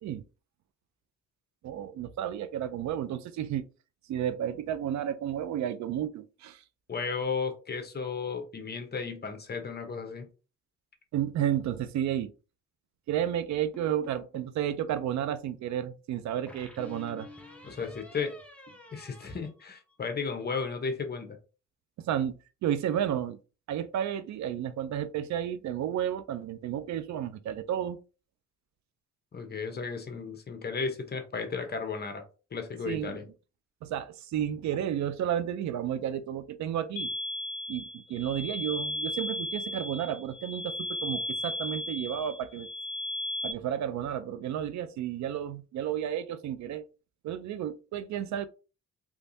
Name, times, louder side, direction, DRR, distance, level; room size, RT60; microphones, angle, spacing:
voice 1, 1.6-3.7 4.1-6.6 11.1-12.3 13.1-17.3 22.0-22.3 22.6-23.4 23.7-28.0 32.9-33.2 33.8-37.1 37.7-42.7 43.4-46.9 47.2-48.5, right 10 dB, 65° right, 0.5 m, -32 dB
voice 2, 6.9-10.3 17.6-18.4 18.9-21.4 29.3-32.2 32.5-33.2, left 5 dB, 35° left, 0.9 m, -34 dB
sound 1, 13.7-14.6 16.5-20.2, left 2 dB, 5° left, 0.8 m, -50 dB
sound 2, 37.0-43.5, left 1 dB, 80° left, 0.6 m, -35 dB
3.5 x 3.1 x 2.7 m
cardioid pair, 90°, 30 cm